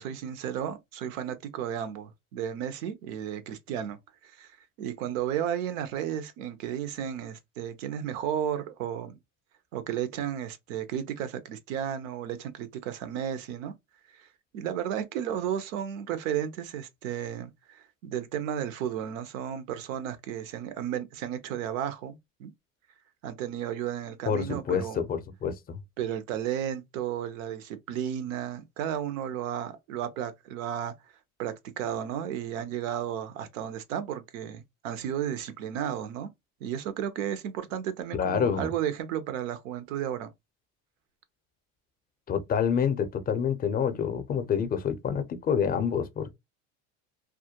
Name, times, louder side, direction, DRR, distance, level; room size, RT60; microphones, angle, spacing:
voice 1, 0.0-9.2 9.7-13.7 14.1-14.3 14.5-22.5 23.2-25.0 26.0-30.9 31.4-36.3 36.6-40.3, right 9 dB, 90° right, 0.6 m, -33 dB
voice 2, 24.3-25.8 38.2-38.7 42.3-46.3, left 7 dB, 25° left, 0.5 m, -27 dB
2.3 x 2.1 x 2.7 m
supercardioid pair, 95°, 38 cm